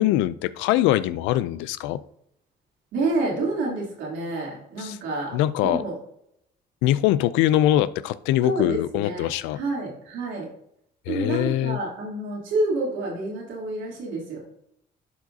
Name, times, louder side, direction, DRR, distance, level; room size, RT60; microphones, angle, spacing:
voice 1, 0.0-2.0 4.8-5.0 5.3-5.8 6.8-9.6 11.1-11.8, left 13 dB, 85° left, 15 dB, 0.4 m, -22 dB
voice 2, 2.9-5.9 8.4-10.5 11.1-14.4, right 2 dB, 80° right, -3 dB, 3.1 m, -28 dB
11.5 x 4.9 x 2.7 m, 0.76 s
supercardioid pair, 70°, 19 cm